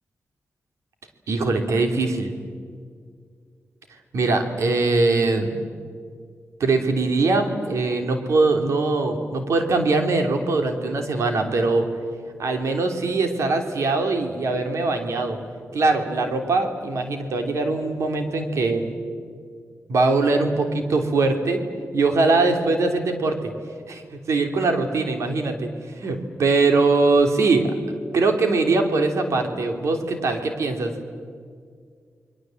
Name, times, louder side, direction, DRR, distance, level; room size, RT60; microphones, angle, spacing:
voice 1, 1.3-2.3 4.1-5.6 6.6-11.9 12.4-15.4 15.7-18.9 19.9-21.6 21.9-23.5 23.9-25.7 26.0-30.9, right 3 dB, 80° right, 5 dB, 3.1 m, -22 dB
29.5 x 22.5 x 7.8 m, 2.1 s
cardioid pair, 90°, 5 cm